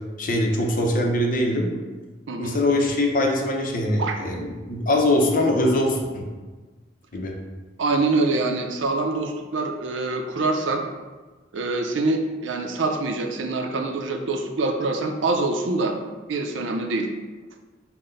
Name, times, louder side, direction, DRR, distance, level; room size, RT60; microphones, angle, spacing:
voice 1, 0.2-1.7 2.4-6.3 7.1-7.3, left 1 dB, 45° left, 1 dB, 0.7 m, -22 dB
voice 2, 2.3-2.6 4.0-4.2 7.8-10.8 11.5-16.0 16.3-17.1, right 3 dB, 75° right, 4 dB, 0.5 m, -25 dB
5.7 x 2.2 x 3.8 m, 1.3 s
head